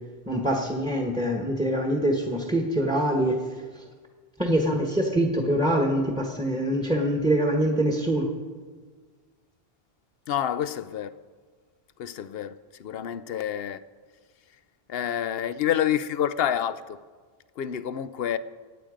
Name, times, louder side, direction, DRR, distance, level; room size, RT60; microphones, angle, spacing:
voice 1, 0.3-3.5 3.7-3.8 4.4-8.3, right 1 dB, 5° right, 1.3 m, -24 dB
voice 2, 10.3-11.1 12.0-13.8 14.9-17.0 17.6-18.4, left 10 dB, 70° left, 0.8 m, -28 dB
24.0 x 8.9 x 5.1 m
omnidirectional pair, 1.0 m